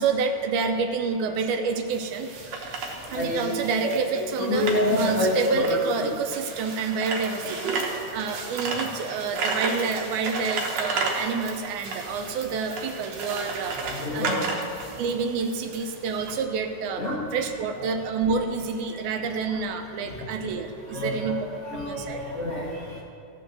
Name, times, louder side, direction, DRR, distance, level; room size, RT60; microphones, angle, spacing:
voice 1, 0.0-2.3 3.1-4.7 5.0-14.4 15.0-17.1 17.3-21.5 21.7-22.2, right 5 dB, 80° right, 6 dB, 2.0 m, -28 dB
sound 1, 1.9-16.3, right 3 dB, 60° right, 2.1 m, -33 dB
voice 2, 3.0-3.4 4.5-5.8 13.9-14.4 17.0-17.2 20.9-21.3 21.6-23.0, left 1 dB, 55° left, -6 dB, 0.8 m, -26 dB
14.5 x 5.3 x 6.6 m, 2.5 s
omnidirectional pair, 3.8 m